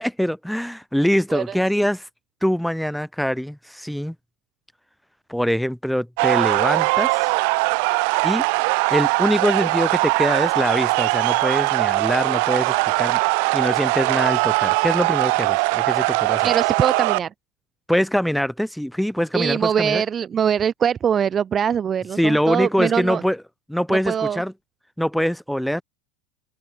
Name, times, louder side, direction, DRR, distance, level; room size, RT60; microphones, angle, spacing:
voice 1, 0.0-2.1 2.4-4.1 5.3-7.3 8.2-8.4 8.9-13.2 13.5-16.5 17.9-20.0 22.2-23.4 23.7-24.5 25.0-25.8, equal, ahead, 5.0 m, -23 dB
sound 1, 6.2-17.2, right 33 dB, 65° right, 1.4 m, -21 dB
voice 2, 16.4-17.3 19.3-23.2 23.9-24.4, right 8 dB, 30° right, 1.7 m, -22 dB
hypercardioid pair, 85°, 0 cm